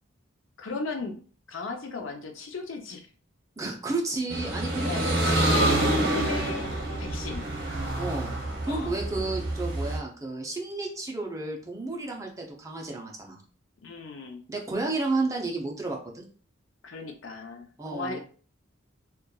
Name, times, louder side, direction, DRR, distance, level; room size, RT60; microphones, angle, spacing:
voice 1, 0.6-1.2 1.5-3.1 4.8-6.7 7.0-7.4 8.7-9.0 13.8-14.4 16.8-18.2, left 4 dB, 80° left, 5 dB, 0.5 m, -36 dB
voice 2, 3.6-5.8 8.0-8.3 8.6-13.4 14.5-16.2 17.8-18.2, right 3 dB, 15° right, 0 dB, 0.5 m, -32 dB
sound 1, 4.3-10.0, right 1 dB, 55° right, 0.7 m, -27 dB
2.9 x 2.3 x 2.2 m, 0.41 s
head